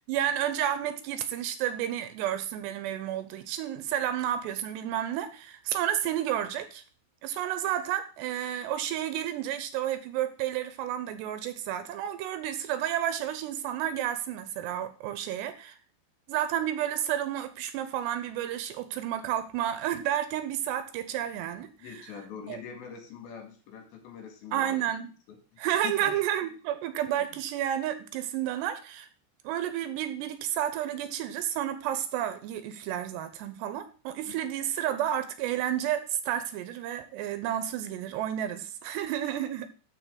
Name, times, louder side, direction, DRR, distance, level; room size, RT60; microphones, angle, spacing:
voice 1, 0.1-6.8 7.2-15.8 16.3-21.9 22.5-22.6 24.5-25.1 25.6-29.1 29.4-39.7, right 11 dB, 85° right, 11 dB, 2.7 m, -31 dB
voice 2, 21.8-24.8 25.3-25.4 25.8-26.1 34.2-34.3, left 7 dB, 80° left, 4 dB, 4.1 m, -43 dB
14.0 x 4.7 x 3.8 m, 0.37 s
omnidirectional pair, 5.1 m